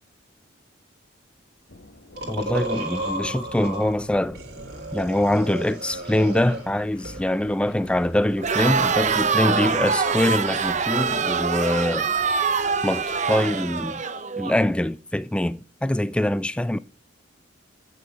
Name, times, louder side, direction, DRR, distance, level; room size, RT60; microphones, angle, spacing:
sound 1, 1.7-13.4, left 1 dB, 80° left, 1.7 m, -48 dB
sound 2, 2.2-3.9 4.3-6.7 7.0-8.6, right 1 dB, 55° right, 2.6 m, -33 dB
voice 1, 2.3-4.4 4.9-12.1 12.8-14.0 14.4-16.8, left 1 dB, 5° left, 0.3 m, -24 dB
Crowd, 8.4-14.6, right 5 dB, 40° right, 0.6 m, -24 dB
8.3 x 6.4 x 5.4 m
head